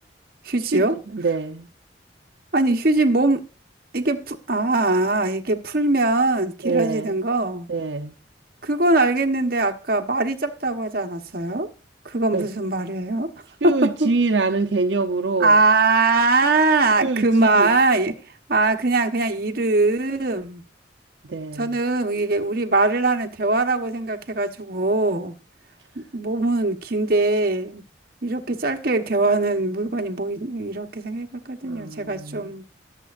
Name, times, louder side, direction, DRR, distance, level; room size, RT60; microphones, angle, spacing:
voice 1, 0.4-1.0 2.5-3.4 3.9-7.7 8.6-11.7 12.0-13.3 13.6-14.1 15.4-18.1 18.5-20.6 21.6-25.4 25.9-27.8 28.2-32.6, right 2 dB, 55° right, 1.2 m, -21 dB
voice 2, 1.1-1.7 6.6-7.2 7.7-8.1 12.3-12.5 13.6-15.6 17.0-17.8 21.3-21.8 31.6-32.5, right 3 dB, 80° right, 0.8 m, -25 dB
20.0 x 7.6 x 2.5 m
head